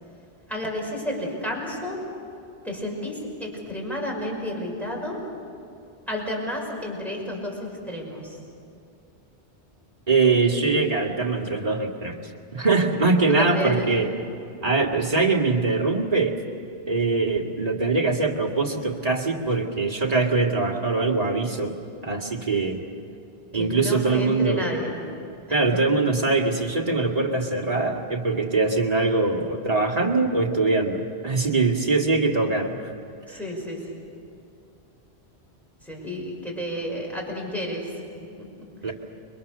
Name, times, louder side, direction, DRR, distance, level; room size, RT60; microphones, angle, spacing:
voice 1, 0.5-2.0 2.6-5.2 6.1-8.4 13.3-13.8 23.5-24.9 33.3-33.8 35.8-37.9 38.4-38.9, left 1 dB, ahead, -2 dB, 5.7 m, -31 dB
voice 2, 10.1-12.2 12.5-14.1 14.6-16.4 16.9-22.8 23.5-24.7 25.5-32.9 38.8-38.9, right 3 dB, 35° right, 0 dB, 2.3 m, -23 dB
29.5 x 23.0 x 6.7 m, 2.6 s
omnidirectional pair, 1.1 m